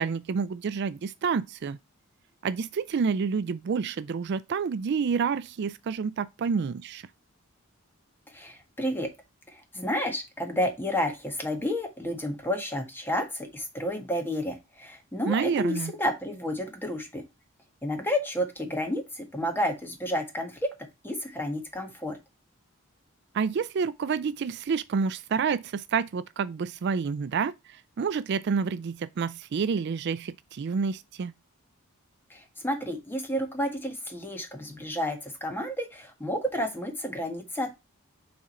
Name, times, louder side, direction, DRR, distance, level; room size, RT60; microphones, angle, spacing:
voice 1, 0.0-1.8 2.4-7.1 15.3-15.9 23.3-31.3, right 5 dB, 50° right, 0.3 m, -29 dB
voice 2, 8.3-9.1 9.5-17.2 17.8-20.7 21.0-22.2 32.3-37.7, equal, 10° left, 1.5 m, -31 dB
6.9 x 3.8 x 4.3 m
head